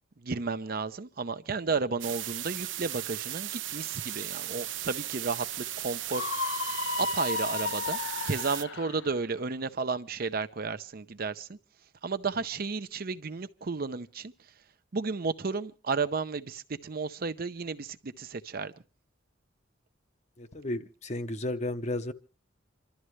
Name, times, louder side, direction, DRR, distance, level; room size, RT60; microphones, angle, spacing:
voice 1, 0.2-6.5 7.0-8.0 8.2-11.6 12.0-14.3 14.9-18.7, right 4 dB, 50° right, 0.7 m, -33 dB
sound 1, 2.0-8.6, right 13 dB, 85° right, 0.9 m, -36 dB
Screaming, 6.1-9.0, left 4 dB, 75° left, 0.8 m, -33 dB
voice 2, 20.4-22.1, left 1 dB, 35° left, 0.9 m, -33 dB
27.5 x 12.5 x 3.2 m
head